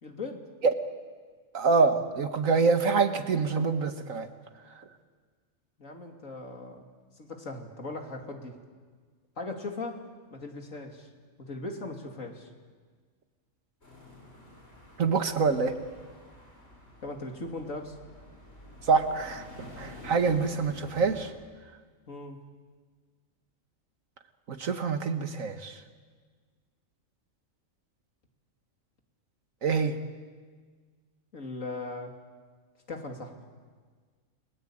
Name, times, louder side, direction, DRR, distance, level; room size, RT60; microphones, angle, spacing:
voice 1, 0.0-0.4 5.8-6.9 7.2-8.6 9.4-10.0 10.3-11.1 11.4-12.5 17.0-17.9 22.1-22.4 31.3-32.2 32.9-33.4, left 2 dB, 80° left, 3 dB, 3.3 m, -38 dB
voice 2, 1.5-4.3 15.0-15.7 18.8-21.3 24.5-25.8 29.6-30.0, right 4 dB, 85° right, 8 dB, 2.0 m, -26 dB
sound 1, 13.8-21.3, left 2 dB, 50° left, 6.7 m, -49 dB
29.5 x 21.5 x 8.9 m, 1.5 s
omnidirectional pair, 1.4 m